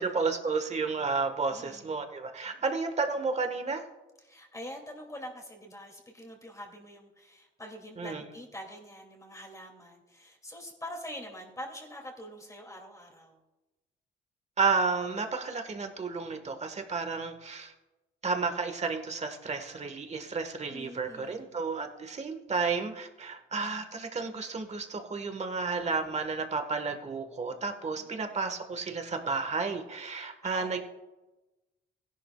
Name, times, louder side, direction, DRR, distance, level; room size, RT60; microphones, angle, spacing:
voice 1, 0.0-3.8 8.0-8.2 14.6-17.7 18.2-30.8, right 4 dB, 35° right, 6 dB, 1.5 m, -32 dB
voice 2, 1.5-2.0 2.4-2.6 4.2-13.4 20.7-21.7 27.9-28.3 30.4-30.8, equal, 15° left, 1 dB, 2.5 m, -45 dB
16.5 x 11.0 x 2.4 m, 1.1 s
cardioid pair, 90°, 20 cm